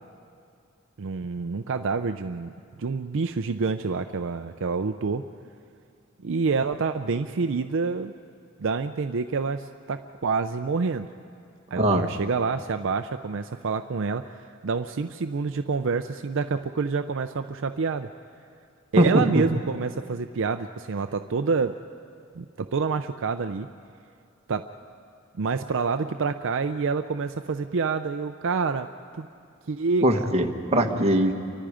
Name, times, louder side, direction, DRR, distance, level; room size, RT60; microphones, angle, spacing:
voice 1, 1.0-2.5 2.8-5.2 6.2-8.1 8.6-11.1 11.7-18.1 18.9-21.8 22.3-23.7 24.5-24.7 25.4-28.9 29.1-29.3 29.7-30.1 30.8-31.0, right 4 dB, 65° right, 8 dB, 0.5 m, -27 dB
voice 2, 30.0-31.3, right 1 dB, 30° right, 2 dB, 1.5 m, -21 dB
30.0 x 24.5 x 5.0 m, 2.4 s
head